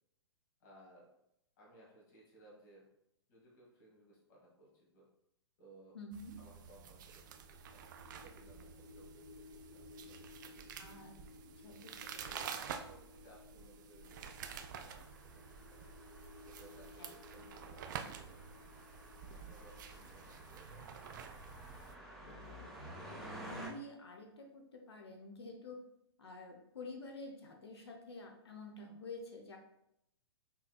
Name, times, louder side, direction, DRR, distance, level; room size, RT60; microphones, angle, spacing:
voice 1, 0.6-1.1 1.6-2.9 3.3-5.1 5.6-6.0 6.4-10.7 11.8-11.9 12.2-15.8 16.4-18.6 19.3-21.1, right 1 dB, 45° left, -3 dB, 1.5 m, -62 dB
voice 2, 5.9-6.4 10.8-11.1 11.6-12.3 17.0-17.4 22.3-22.7 23.1-25.8 26.2-29.6, left 2 dB, 70° left, 2 dB, 0.7 m, -50 dB
sound 1, 6.1-21.9, right 7 dB, 45° right, 0.4 m, -49 dB
sound 2, 6.8-21.8, left 3 dB, 75° right, 1.1 m, -59 dB
sound 3, 14.4-23.7, right 1 dB, ahead, 0.8 m, -53 dB
5.6 x 3.1 x 2.3 m, 0.79 s
figure-of-eight pair, 115°, 14 cm